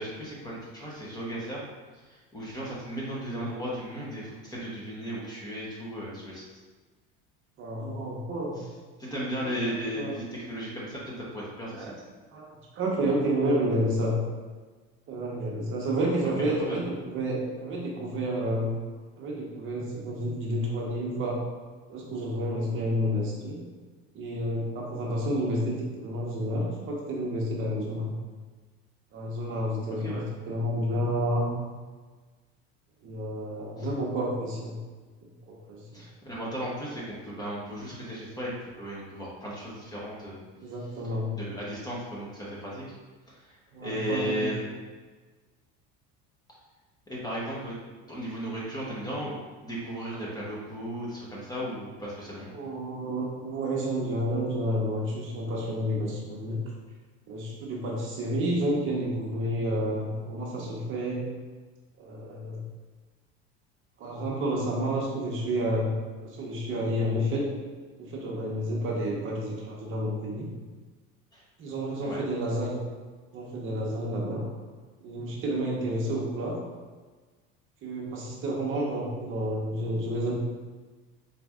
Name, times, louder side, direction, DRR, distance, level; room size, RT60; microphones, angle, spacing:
voice 1, 0.0-1.6 1.9-6.5 9.0-11.9 16.4-16.8 30.0-30.2 33.8-33.9 35.9-40.4 41.3-42.8 43.3-44.7 47.1-47.7 48.1-52.5 71.3-71.4 72.0-72.2, equal, 15° left, -6 dB, 1.0 m, -35 dB
voice 2, 7.6-8.6 9.4-10.1 11.7-11.9 12.3-14.2 15.1-18.8 19.2-21.4 21.9-23.6 24.1-28.1 29.1-31.5 33.0-34.8 35.5-36.0 40.5-41.4 43.7-44.5 52.5-56.6 57.3-61.3 62.0-62.6 64.0-65.9 66.2-67.5 68.0-70.5 71.6-72.7 73.3-74.4 75.0-76.6 77.8-80.4, equal, 45° right, -3 dB, 0.9 m, -30 dB
4.1 x 2.5 x 3.5 m, 1.4 s
cardioid pair, 130°, 29 cm